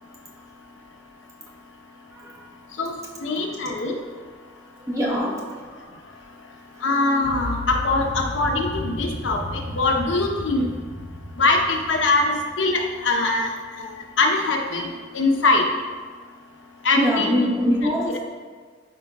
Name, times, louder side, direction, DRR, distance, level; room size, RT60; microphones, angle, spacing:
voice 1, 2.1-2.5 4.9-5.4 14.7-14.9 16.9-18.2, equal, 15° right, -5 dB, 1.2 m, -24 dB
voice 2, 3.2-4.0 6.8-9.4 9.8-10.7 11.4-13.5 13.8-13.9 14.2-14.9 15.1-15.6 16.8-17.4, left 3 dB, 70° left, 2 dB, 0.8 m, -22 dB
sound 1, 7.2-13.3, left 1 dB, 90° right, 1.6 m, -34 dB
12.0 x 4.7 x 2.3 m, 1.5 s
head